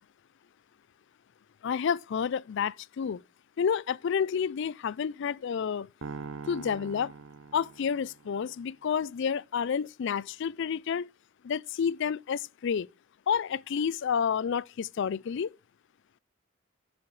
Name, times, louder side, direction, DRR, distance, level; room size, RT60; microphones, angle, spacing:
voice 1, 1.6-3.2 3.6-5.9 6.5-7.1 7.5-11.1 11.4-12.9 13.3-15.5, left 7 dB, 60° left, 0.4 m, -30 dB
sound 1, 6.0-8.4, right 5 dB, 65° right, 0.7 m, -42 dB
9.7 x 8.2 x 3.2 m
head